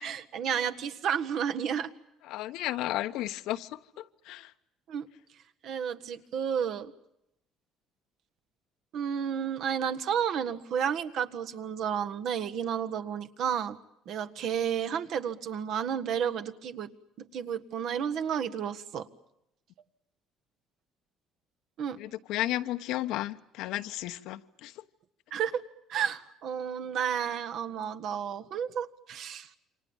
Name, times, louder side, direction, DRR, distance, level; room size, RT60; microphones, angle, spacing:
voice 1, 0.0-1.9 4.9-5.1 5.6-6.9 8.9-13.8 14.0-16.9 17.2-19.1 21.8-22.0 25.3-25.6 25.9-29.5, right 8 dB, 55° right, 1.6 m, -31 dB
voice 2, 2.2-4.5 22.0-24.8, left 15 dB, 75° left, 1.2 m, -34 dB
28.5 x 25.5 x 7.3 m
cardioid pair, 150°, 0 cm